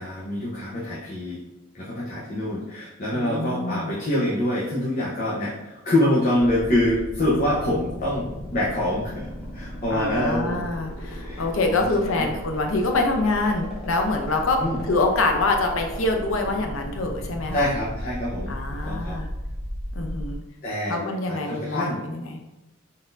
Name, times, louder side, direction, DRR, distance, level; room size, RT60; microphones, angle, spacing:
voice 1, 0.0-1.4 1.7-9.3 9.5-10.7 11.2-12.3 14.6-14.8 17.5-19.2 20.6-21.0 21.3-22.0, left 1 dB, 40° left, -7 dB, 0.8 m, -25 dB
voice 2, 3.1-4.0 9.9-17.7 18.5-19.3 19.9-20.4 20.9-22.4, left 2 dB, 70° left, 3 dB, 0.6 m, -25 dB
sound 1, 6.4-20.3, equal, ahead, 1.0 m, -35 dB
3.9 x 3.6 x 2.6 m, 0.99 s
head